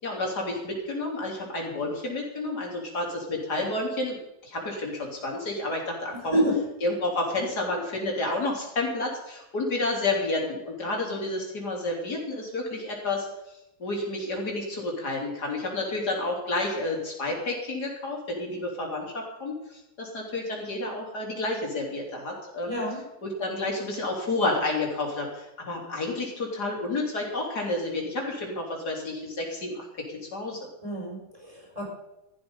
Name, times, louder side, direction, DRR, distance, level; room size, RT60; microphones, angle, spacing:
voice 1, 0.0-4.2 4.4-6.4 6.8-13.3 13.8-22.8 23.2-29.9 30.1-30.6, left 2 dB, 90° left, -1 dB, 4.2 m, -30 dB
voice 2, 6.1-6.6 22.6-23.0 30.8-31.9, right 1 dB, 20° right, -2 dB, 5.9 m, -28 dB
14.0 x 12.5 x 5.4 m, 0.92 s
omnidirectional pair, 1.7 m